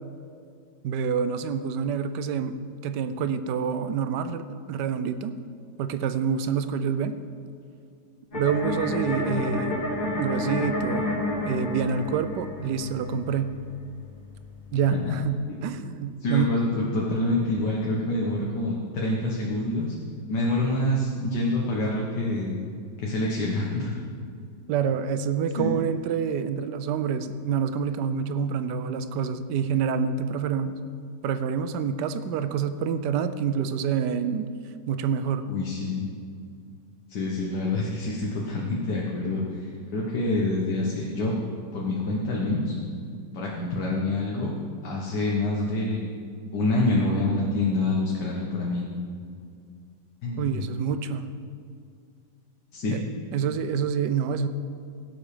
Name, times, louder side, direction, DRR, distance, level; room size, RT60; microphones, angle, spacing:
voice 1, 0.8-2.6 2.8-5.4 5.8-7.1 8.3-9.8 10.2-11.1 11.5-13.5 14.7-15.4 15.6-16.6 24.7-30.7 31.2-34.5 34.9-35.5 50.4-51.3 52.9-53.0 53.3-54.5, right 7 dB, 75° right, 11 dB, 1.2 m, -27 dB
sound 1, 8.3-15.3, left 1 dB, 30° left, 3.1 m, -30 dB
voice 2, 16.2-20.0 20.3-22.6 23.0-23.9 25.6-25.7 35.5-36.1 37.1-39.6 39.9-41.4 41.7-42.7 43.3-44.5 44.8-46.1 46.5-48.8 50.2-50.6 52.7-53.1, left 2 dB, 70° left, -3 dB, 1.9 m, -26 dB
17.0 x 8.1 x 5.0 m, 2.3 s
omnidirectional pair, 1.9 m